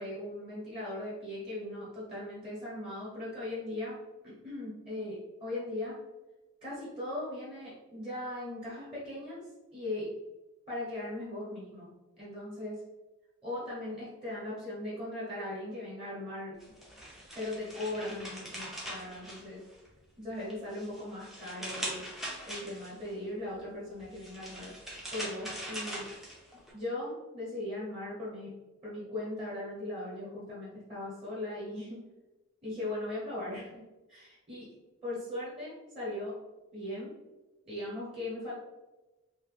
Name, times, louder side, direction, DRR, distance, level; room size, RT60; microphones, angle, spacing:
voice 1, 0.0-4.0 4.2-6.0 6.6-9.4 9.7-10.1 10.7-11.9 12.2-12.8 13.4-16.6 17.3-19.6 20.2-22.0 22.4-24.7 25.1-26.0 26.7-28.5 28.8-32.0 32.6-33.8 34.1-34.7 35.0-36.4 36.7-37.1 37.6-38.5, left 1 dB, 25° right, -8 dB, 0.9 m, -39 dB
sound 1, 16.6-20.0 20.4-23.1 24.0-26.7, equal, ahead, 0.4 m, -42 dB
2.8 x 2.1 x 3.2 m, 1.1 s
head